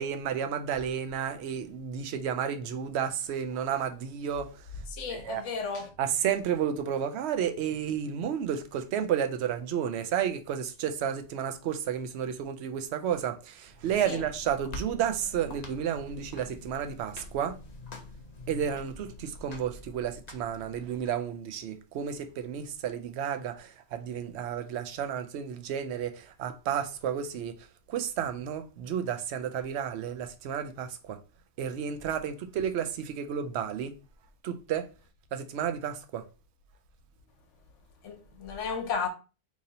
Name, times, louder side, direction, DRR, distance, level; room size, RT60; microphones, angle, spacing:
voice 1, 0.0-4.5 5.1-5.4 6.0-17.6 18.5-27.5 27.9-31.2 31.6-33.9 34.4-34.9 35.3-36.2, right 8 dB, 65° right, 0.8 m, -32 dB
voice 2, 4.9-5.9 14.1-14.2 38.0-39.1, left 5 dB, 70° left, 1.1 m, -33 dB
sound 1, 13.6-21.1, left 2 dB, 45° left, 0.6 m, -46 dB
3.0 x 2.7 x 3.8 m
omnidirectional pair, 1.3 m